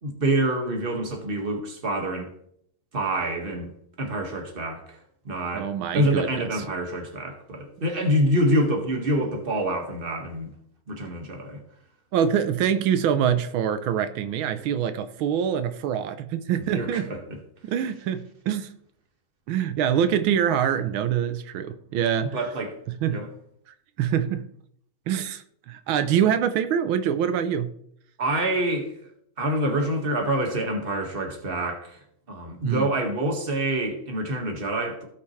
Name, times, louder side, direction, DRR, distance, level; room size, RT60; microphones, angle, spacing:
voice 1, 0.0-2.3 2.9-3.7 4.0-5.0 5.3-10.5 10.9-11.6 16.7-17.4 22.3-22.8 23.1-23.3 28.2-28.9 29.4-32.0 32.3-35.1, right 1 dB, 30° right, 3 dB, 1.8 m, -26 dB
voice 2, 5.5-6.3 12.1-17.1 17.6-18.7 19.5-22.4 23.0-23.2 24.0-24.5 25.1-27.7 32.6-32.9, right 9 dB, 85° right, 10 dB, 1.5 m, -25 dB
16.5 x 5.9 x 3.2 m, 0.67 s
omnidirectional pair, 2.2 m